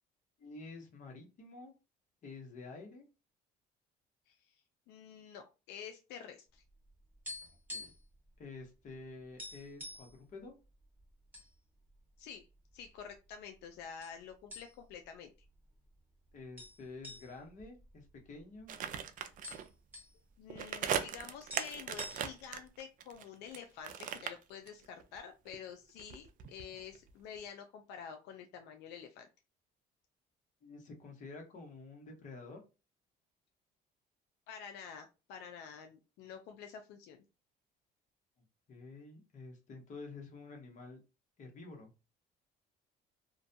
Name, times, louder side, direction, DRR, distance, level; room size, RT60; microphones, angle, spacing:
voice 1, 0.4-1.7 2.2-3.0 7.7-7.9 8.4-10.5 16.3-18.7 30.6-32.6 38.7-41.0 41.4-41.9, left 3 dB, 45° left, 1 dB, 1.0 m, -49 dB
voice 2, 4.9-6.6 12.2-12.5 12.7-15.3 20.4-29.3 34.5-37.2, left 7 dB, 85° left, 6 dB, 0.4 m, -49 dB
sound 1, 6.7-8.1 8.4-8.6 8.9-9.0 9.4-10.1 10.8-11.5 11.9-12.0 12.7-13.3 14.0-14.2 14.5-15.0 15.4-15.5 16.6-18.6 18.9-19.0 19.2-20.1 21.2-21.3 21.5-22.6, left 1 dB, 10° right, 1.0 m, -47 dB
sound 2, 18.7-19.7 20.5-23.6 23.8-25.2 25.5-27.1 27.4-27.5, right 8 dB, 50° right, 0.4 m, -39 dB
2.4 x 2.2 x 2.6 m, 0.29 s
cardioid pair, 110°, 17 cm